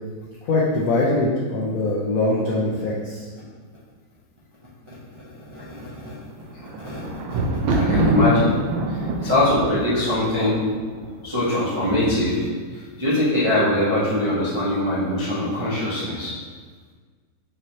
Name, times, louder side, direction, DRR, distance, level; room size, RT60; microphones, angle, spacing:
voice 1, 0.4-3.3, left 2 dB, 85° left, -4 dB, 0.7 m, -22 dB
voice 2, 5.3-6.2 6.5-8.5 8.9-10.6 11.2-16.3, left 1 dB, 45° right, -10 dB, 0.4 m, -23 dB
Thunder, 6.3-11.4 12.2-12.7 13.0-13.1, right 2 dB, 75° right, 1.3 m, -25 dB
5.3 x 3.1 x 2.7 m, 1.5 s
omnidirectional pair, 2.2 m